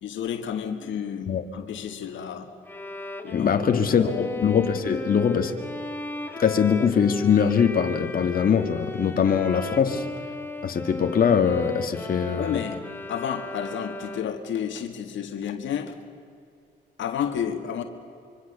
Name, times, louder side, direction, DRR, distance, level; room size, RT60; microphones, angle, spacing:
voice 1, 0.0-2.5 3.2-4.4 12.4-12.8 13.1-16.0 17.0-17.8, left 8 dB, 75° left, 6 dB, 1.8 m, -31 dB
Bowed string instrument, 2.7-14.5, left 2 dB, 10° left, 1.9 m, -36 dB
voice 2, 3.3-5.5 6.4-10.0 10.6-12.6, left 7 dB, 45° left, 5 dB, 1.9 m, -22 dB
25.5 x 24.5 x 6.9 m, 2.4 s
cardioid pair, 90°, 20 cm